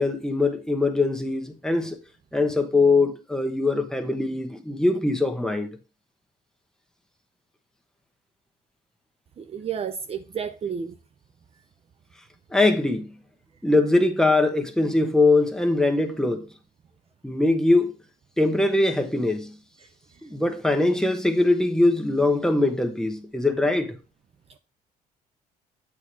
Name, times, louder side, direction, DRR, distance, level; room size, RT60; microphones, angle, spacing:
voice 1, 0.0-2.0 2.3-5.7 12.5-13.1 13.6-16.5 17.2-17.9 18.4-19.5 20.2-24.0, left 2 dB, 5° left, 1.0 m, -22 dB
voice 2, 9.4-11.0, right 7 dB, 35° right, 0.6 m, -31 dB
8.4 x 2.9 x 6.1 m
cardioid pair, 110°, 17 cm